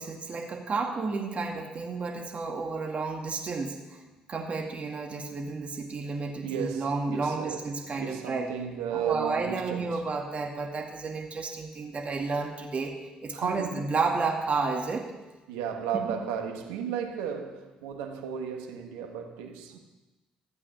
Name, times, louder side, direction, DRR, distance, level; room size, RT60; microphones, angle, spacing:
voice 1, 0.0-3.8 4.3-8.5 8.9-13.0 13.2-15.1 15.9-16.1, right 4 dB, 45° right, 2.3 m, -31 dB
voice 2, 6.3-10.1 13.3-13.8 15.5-19.8, right 8 dB, 85° right, 1.4 m, -34 dB
15.0 x 8.6 x 7.1 m
hypercardioid pair, 50°, 3 cm